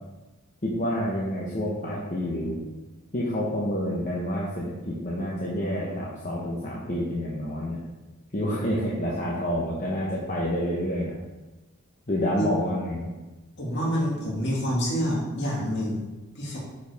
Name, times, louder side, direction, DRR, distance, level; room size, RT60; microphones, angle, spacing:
voice 1, 0.6-2.6 3.1-7.8 8.3-11.2 12.1-13.1, equal, 35° left, -6 dB, 1.0 m, -28 dB
voice 2, 13.6-16.6, equal, 55° left, -4 dB, 2.3 m, -27 dB
9.6 x 4.7 x 3.5 m, 1.1 s
head